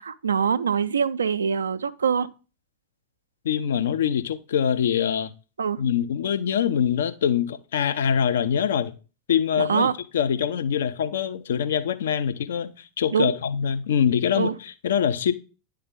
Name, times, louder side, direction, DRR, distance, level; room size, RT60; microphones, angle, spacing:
voice 1, 0.0-2.3 5.6-5.8 9.6-9.9 13.1-13.4 14.4-14.5, right 6 dB, 70° right, 0.3 m, -24 dB
voice 2, 3.4-5.3 5.8-8.9 9.3-15.3, left 8 dB, 60° left, 0.5 m, -24 dB
10.0 x 3.4 x 3.5 m
figure-of-eight pair, 90°, 0 cm